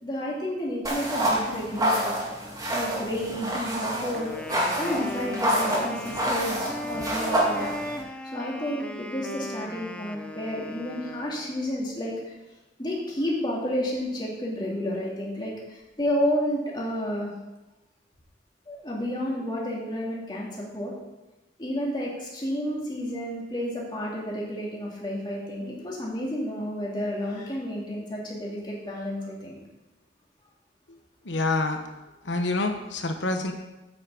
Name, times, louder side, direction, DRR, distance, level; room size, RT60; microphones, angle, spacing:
voice 1, 0.0-2.2 2.7-4.4 4.7-12.1 12.8-17.3 18.7-20.9 21.6-29.6, equal, 25° left, -4 dB, 2.6 m, -31 dB
sound 1, 0.8-8.0, right 1 dB, 20° right, 2.2 m, -28 dB
Wind instrument woodwind instrument, 4.1-11.7, left 1 dB, 5° left, 0.5 m, -38 dB
voice 2, 31.2-31.8 32.2-33.5, left 2 dB, 75° left, 5 dB, 1.2 m, -27 dB
9.1 x 6.0 x 7.2 m, 1.0 s
head